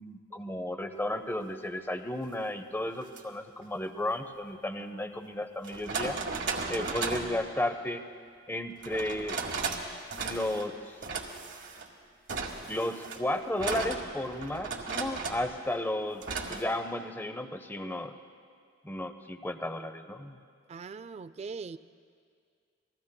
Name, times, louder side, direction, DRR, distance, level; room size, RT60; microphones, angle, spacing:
voice 1, 0.0-6.2 6.7-8.0 8.5-9.4 10.2-11.1 12.7-16.2 16.5-18.1 18.8-20.4, left 1 dB, 10° left, 8 dB, 0.6 m, -33 dB
sound 1, 3.0-3.2 4.8-4.9 5.6-7.4 8.8-9.8 10.1-10.7 11.0-11.9 12.3-15.5 16.2-16.6, right 4 dB, 75° right, 1.5 m, -35 dB
voice 2, 6.6-6.9 20.7-21.8, right 5 dB, 35° right, 15 dB, 0.3 m, -41 dB
29.0 x 20.0 x 2.2 m, 2.2 s
head